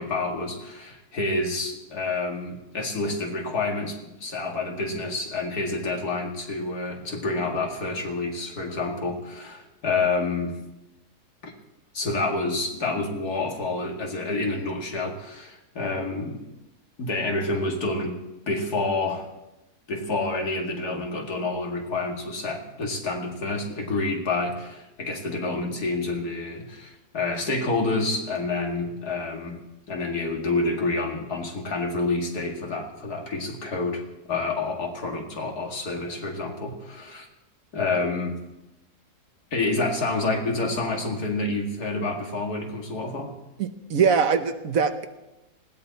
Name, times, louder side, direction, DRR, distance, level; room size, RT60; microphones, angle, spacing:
voice 1, 0.0-10.6 11.4-11.5 11.9-16.4 17.0-18.2 18.5-19.3 19.9-29.6 29.9-34.0 34.3-37.3 37.7-38.4 39.5-43.4, left 3 dB, 70° left, 2 dB, 2.6 m, -28 dB
voice 2, 43.6-45.0, right 6 dB, 60° right, 9 dB, 1.3 m, -22 dB
20.0 x 17.0 x 4.1 m, 0.97 s
omnidirectional pair, 1.7 m